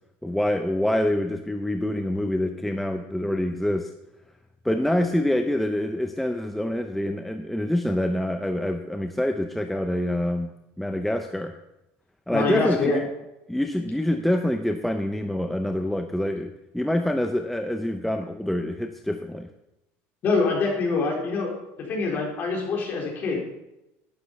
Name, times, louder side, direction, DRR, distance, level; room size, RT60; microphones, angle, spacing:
voice 1, 0.2-3.9 4.6-11.5 12.3-13.0 13.5-19.5, left 1 dB, ahead, 5 dB, 0.6 m, -26 dB
voice 2, 12.3-13.0 20.2-21.5 21.9-23.4, left 4 dB, 35° left, -1 dB, 4.0 m, -24 dB
11.5 x 10.5 x 5.4 m, 0.90 s
cardioid pair, 165°, 6 cm